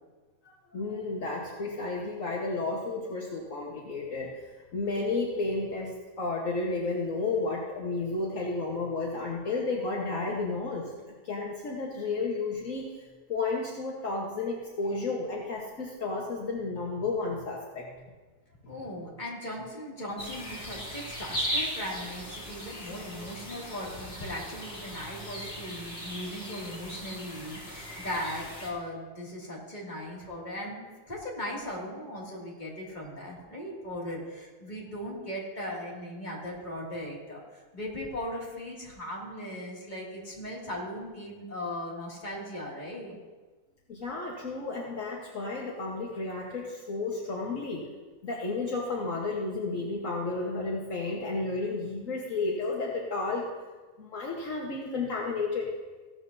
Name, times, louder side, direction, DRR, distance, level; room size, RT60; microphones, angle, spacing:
voice 1, 0.4-10.9 11.2-17.9 25.0-25.1 43.9-47.9 48.2-53.5 54.0-55.7, left 3 dB, 65° left, -2 dB, 1.7 m, -32 dB
voice 2, 18.7-37.4 37.7-43.2, left 1 dB, 30° left, -4 dB, 2.7 m, -38 dB
sound 1, 20.2-28.7, equal, 45° left, 3.4 m, -38 dB
16.0 x 12.5 x 2.7 m, 1.3 s
omnidirectional pair, 1.5 m